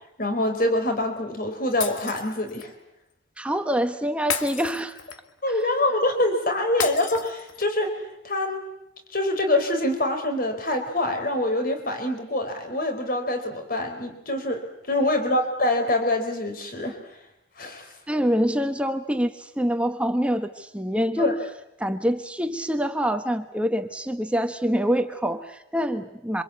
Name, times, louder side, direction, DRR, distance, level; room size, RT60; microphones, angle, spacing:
voice 1, 0.2-2.7 5.4-8.6 9.1-14.6 14.9-17.0 17.6-17.9 21.2-21.4, left 1 dB, 50° left, 6 dB, 4.4 m, -25 dB
Shatter, 1.8-2.7 4.3-5.4 6.8-7.8, left 7 dB, 90° left, 1.9 m, -32 dB
voice 2, 3.4-5.0 5.5-5.6 15.0-15.1 18.1-21.4 21.8-26.4, equal, 5° right, 7 dB, 1.2 m, -25 dB
27.5 x 25.5 x 8.5 m, 0.83 s
head